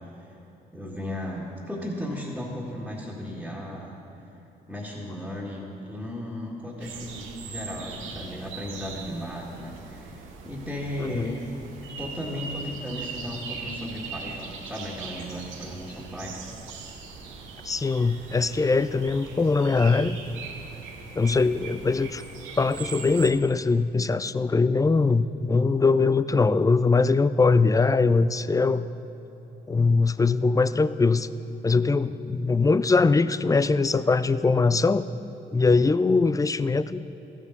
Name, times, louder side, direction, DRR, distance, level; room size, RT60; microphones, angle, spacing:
voice 1, 0.7-3.9 4.7-11.5 12.0-16.4, left 1 dB, ahead, -6 dB, 2.0 m, -35 dB
sound 1, 6.8-23.3, right 5 dB, 80° right, 0.9 m, -40 dB
voice 2, 11.0-11.4 17.7-20.2 21.2-22.2 22.6-28.8 29.7-31.3 31.6-35.0 35.5-37.1, left 4 dB, 15° left, 15 dB, 0.4 m, -22 dB
14.0 x 7.2 x 4.1 m, 2.9 s
hypercardioid pair, 45°, 20 cm